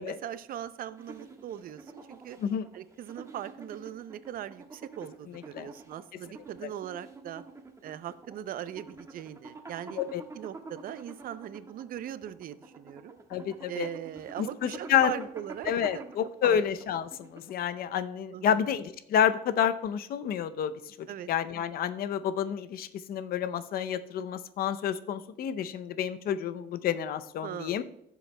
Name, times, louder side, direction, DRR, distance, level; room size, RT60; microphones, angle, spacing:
voice 1, 0.0-2.4 2.7-7.4 7.8-10.0 10.3-13.2 13.7-16.1 16.4-16.6 18.3-18.6 21.1-21.3 27.4-27.8, right 11 dB, 60° right, 14 dB, 0.5 m, -40 dB
sound 1, 0.9-17.8, right 3 dB, 20° right, 1.3 m, -48 dB
voice 2, 5.3-5.7 6.6-6.7 10.0-10.2 13.3-13.9 14.4-15.2 15.7-27.8, left 9 dB, 60° left, 12 dB, 0.6 m, -29 dB
15.5 x 7.0 x 2.2 m, 0.77 s
cardioid pair, 110°, 17 cm